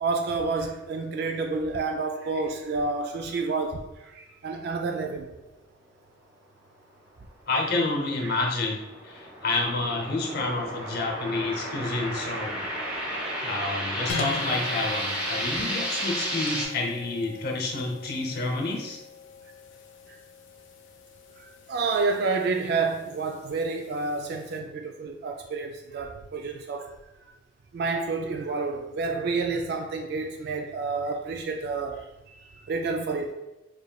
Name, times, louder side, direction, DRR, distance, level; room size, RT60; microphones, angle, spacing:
voice 1, 0.0-5.3 8.2-8.3 20.1-20.2 21.4-26.9 27.3-27.4 27.7-33.3, right 4 dB, 55° right, 0.3 m, -29 dB
voice 2, 7.5-8.8 9.0-19.0, left 2 dB, 55° left, 0.8 m, -29 dB
sound 1, 8.3-16.7, equal, 5° right, 1.1 m, -32 dB
sound 2, 14.1-24.6, left 4 dB, 85° left, 0.5 m, -41 dB
4.6 x 3.1 x 2.3 m
head